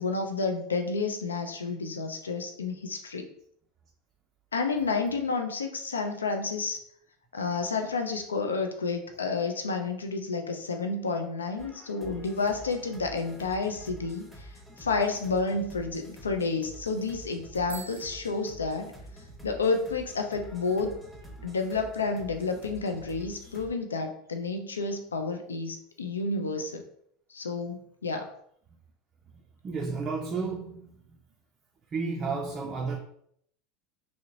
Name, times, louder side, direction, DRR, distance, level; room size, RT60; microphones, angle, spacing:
voice 1, 0.0-3.3 4.5-6.8 7.3-18.9 19.4-21.0 21.4-26.8 27.3-28.3, left 4 dB, 75° left, 0.3 m, -30 dB
sound 1, 11.6-23.7, right 1 dB, ahead, 0.7 m, -47 dB
Bicycle bell, 17.6-19.4, right 4 dB, 90° right, 0.7 m, -46 dB
voice 2, 29.6-31.0 31.9-33.0, right 4 dB, 30° right, 0.4 m, -32 dB
3.1 x 2.8 x 2.6 m
figure-of-eight pair, 80°, 0 cm